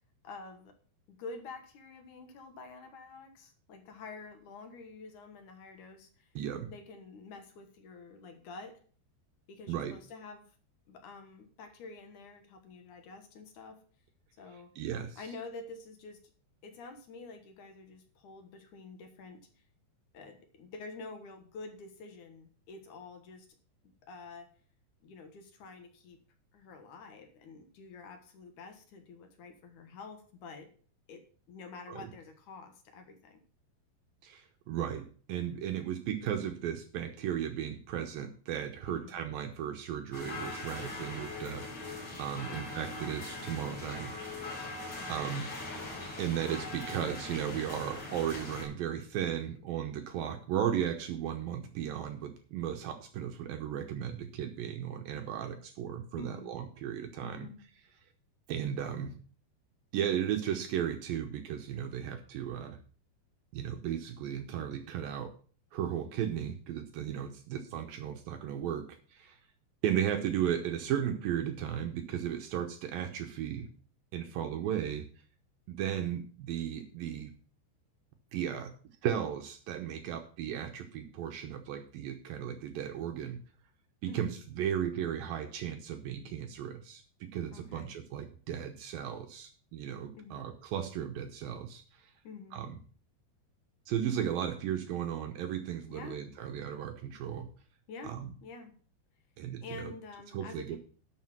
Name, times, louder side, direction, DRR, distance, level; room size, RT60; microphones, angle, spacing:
voice 1, 0.2-0.8 1.1-6.3 6.7-8.8 9.5-10.5 10.9-13.8 14.4-14.8 15.2-16.2 16.6-19.5 20.1-23.5 24.0-24.5 25.0-26.2 26.5-30.7 31.1-33.4 38.9-39.1 42.3-42.6 45.0-45.3 56.2-56.5 57.2-57.6 84.1-84.3 87.5-87.9 90.1-90.5 92.2-92.6 95.9-96.2 97.9-98.2 98.4-98.7 99.6-100.8, left 3 dB, 60° left, 6 dB, 2.2 m, -48 dB
voice 2, 6.4-6.7 9.7-9.9 14.8-15.2 31.9-32.0 34.2-44.1 45.1-45.5 46.2-57.5 58.5-59.2 59.9-62.8 63.5-65.3 65.7-69.4 69.8-73.7 74.1-75.1 75.7-77.3 78.3-78.7 79.0-83.4 84.0-92.1 92.5-92.8 93.9-97.5 98.0-98.3 99.4-99.9 100.3-100.8, right 9 dB, 75° right, 5 dB, 2.2 m, -35 dB
sound 1, 40.1-48.7, left 2 dB, 35° left, 4.6 m, -41 dB
12.0 x 5.8 x 5.9 m, 0.43 s
omnidirectional pair, 5.1 m